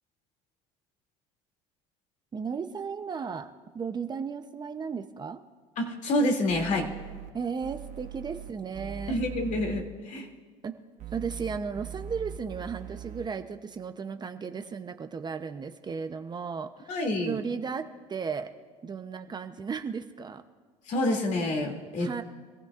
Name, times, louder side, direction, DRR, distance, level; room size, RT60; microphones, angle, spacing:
voice 1, 2.3-5.4 7.3-9.2 10.6-10.8 11.1-18.5 18.8-20.4 22.0-22.2, right 6 dB, 25° right, 7 dB, 0.8 m, -35 dB
voice 2, 5.8-6.9 9.1-10.3 16.9-17.4 20.9-22.1, left 1 dB, 50° left, 1 dB, 2.7 m, -28 dB
sound 1, 6.5-7.3 7.6-9.8 11.0-13.3, right 7 dB, 50° right, 1.2 m, -41 dB
25.5 x 15.5 x 2.5 m, 1.5 s
supercardioid pair, 95°, 16 cm